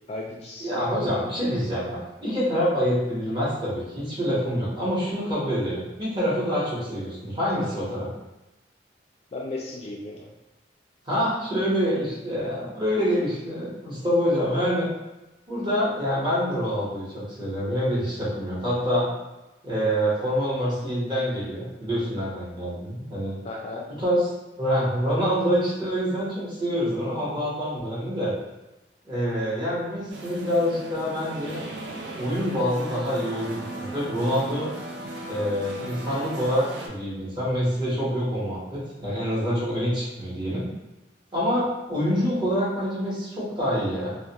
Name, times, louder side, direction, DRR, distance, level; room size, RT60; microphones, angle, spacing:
voice 1, 0.1-0.8 9.3-10.3 23.4-23.9, left 2 dB, 35° left, -2 dB, 0.3 m, -35 dB
voice 2, 0.6-8.1 11.1-14.9 15.5-19.1 19.6-23.4 23.9-28.3 29.0-31.6 32.2-34.7 35.3-40.6 41.3-44.2, equal, 25° right, -8 dB, 1.0 m, -26 dB
sound 1, 30.1-36.9, right 2 dB, 75° right, 0.4 m, -37 dB
2.3 x 2.2 x 2.8 m, 1.0 s
head